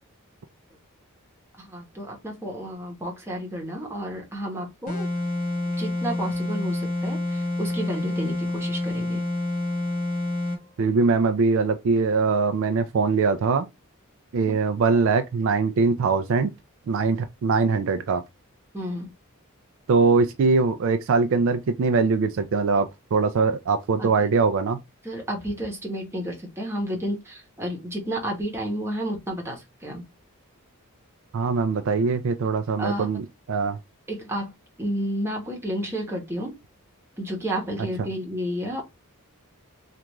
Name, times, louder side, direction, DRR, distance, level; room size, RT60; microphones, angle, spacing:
voice 1, 1.6-5.1 5.8-9.3 18.7-19.1 24.0-24.3 25.0-30.0 32.8-33.1 34.1-34.5 34.8-36.5 37.2-38.8, equal, 10° right, 1.0 m, -31 dB
sound 1, 4.9-10.6, left 2 dB, 40° left, 1.0 m, -28 dB
voice 2, 10.8-13.7 14.3-16.5 16.9-18.2 19.9-24.8 31.3-33.8, right 4 dB, 60° right, 0.4 m, -22 dB
3.4 x 2.4 x 2.9 m
head